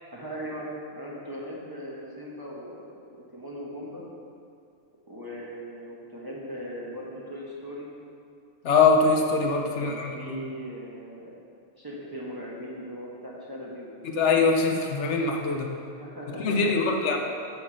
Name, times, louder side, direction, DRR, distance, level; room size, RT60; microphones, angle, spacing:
voice 1, 0.1-4.0 5.1-7.9 9.6-11.3 11.8-14.2 15.7-17.2, equal, 20° right, -5 dB, 1.2 m, -39 dB
voice 2, 8.6-10.4 14.0-15.7 16.4-17.2, left 4 dB, 70° left, 3 dB, 1.0 m, -23 dB
7.2 x 6.0 x 6.3 m, 2.4 s
omnidirectional pair, 1.3 m